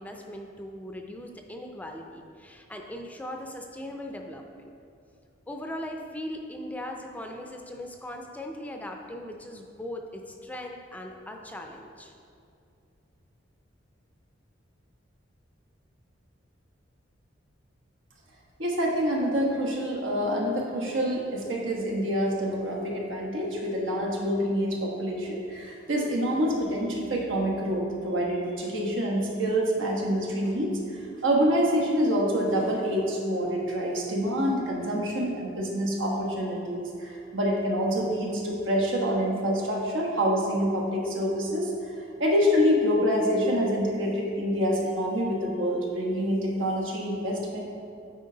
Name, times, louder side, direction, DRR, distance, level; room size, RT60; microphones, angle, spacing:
voice 1, 0.0-4.7 5.5-12.1, left 1 dB, 10° left, 3 dB, 0.4 m, -39 dB
voice 2, 18.6-41.7 42.2-47.6, equal, 80° right, -2 dB, 1.3 m, -26 dB
9.1 x 4.6 x 3.8 m, 2.5 s
head